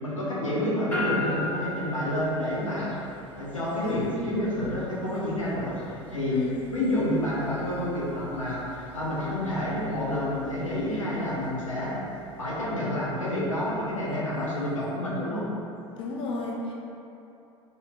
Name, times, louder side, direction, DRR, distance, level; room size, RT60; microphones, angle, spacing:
voice 1, 0.0-2.9 3.4-5.8 6.1-6.4 6.7-11.9 12.4-15.5, left 1 dB, 90° left, -7 dB, 0.9 m, -29 dB
sound 1, 0.9-15.2, left 3 dB, 10° left, 1.1 m, -41 dB
voice 2, 6.3-6.6 15.9-16.7, left 3 dB, 30° left, -2 dB, 0.6 m, -32 dB
4.4 x 3.3 x 2.3 m, 2.8 s
figure-of-eight pair, 80°, 16 cm